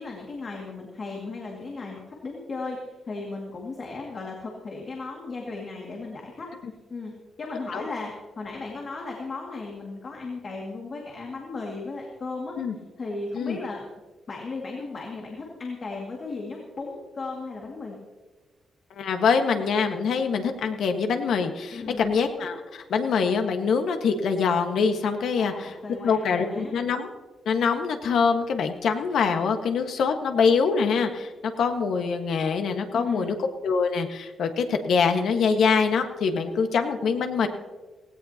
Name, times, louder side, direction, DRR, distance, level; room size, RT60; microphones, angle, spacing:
voice 1, 0.0-6.5 6.9-7.1 7.4-12.6 13.0-13.8 14.3-18.0 21.7-22.2 25.3-26.7 32.9-33.3, left 3 dB, 35° left, -1 dB, 2.2 m, -36 dB
voice 2, 18.9-25.7 26.0-27.1 27.4-33.4 33.6-37.5, left 5 dB, 70° left, 6 dB, 1.5 m, -24 dB
17.5 x 17.0 x 2.9 m, 1.3 s
wide cardioid pair, 160°, 0 cm